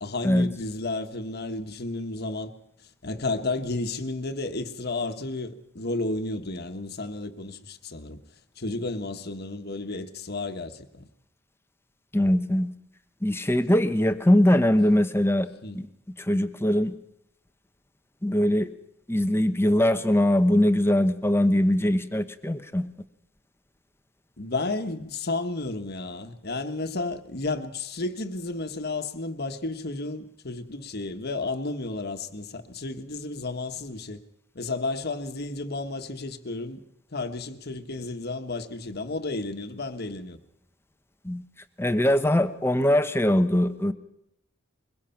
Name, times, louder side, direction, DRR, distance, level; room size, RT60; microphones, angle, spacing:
voice 1, 0.0-2.5 3.0-8.2 8.6-11.1 15.6-15.8 24.4-34.2 34.5-36.8 37.1-40.4, left 2 dB, 55° left, 1.4 m, -32 dB
voice 2, 12.1-12.7 13.2-15.5 15.7-15.9 16.2-16.9 18.2-18.7 19.1-22.8 41.2-41.4 41.8-43.9, left 1 dB, 10° left, 1.0 m, -22 dB
22.5 x 22.0 x 5.9 m
head